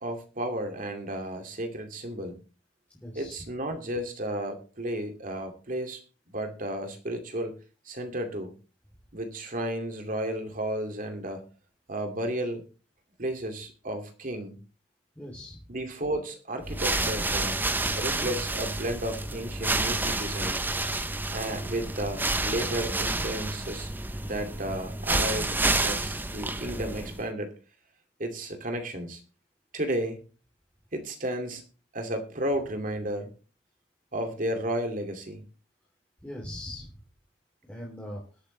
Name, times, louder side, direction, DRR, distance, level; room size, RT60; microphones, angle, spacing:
voice 1, 0.0-2.4 3.1-6.0 6.3-7.5 7.9-8.5 9.1-11.4 11.9-12.6 13.2-14.6 15.7-17.6 17.9-20.6 21.3-23.9 24.2-27.5 28.2-29.2 29.7-30.2 30.9-31.6 31.9-33.3 34.1-35.4, right 1 dB, 45° right, 5 dB, 2.5 m, -33 dB
voice 2, 3.0-3.4 15.1-15.6 36.2-36.9 37.7-38.2, left 1 dB, 10° left, -4 dB, 3.2 m, -40 dB
sound 1, 16.6-27.3, right 2 dB, 10° right, 0.7 m, -29 dB
21.0 x 8.4 x 3.3 m, 0.36 s
head